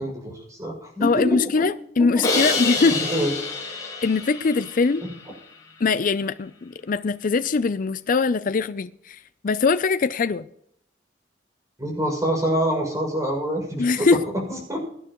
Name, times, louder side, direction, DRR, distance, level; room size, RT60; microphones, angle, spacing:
voice 1, 0.0-1.6 2.0-2.4 3.1-3.3 11.8-14.1 14.5-14.8, equal, 20° right, 6.3 m, -26 dB
voice 2, 1.0-3.0 4.0-5.0 5.8-9.2 9.4-10.4 13.8-14.2, left 4 dB, 50° left, 0.5 m, -22 dB
Crash cymbal, 2.2-5.3, left 3 dB, 20° left, 4.9 m, -27 dB
23.0 x 9.9 x 3.0 m
head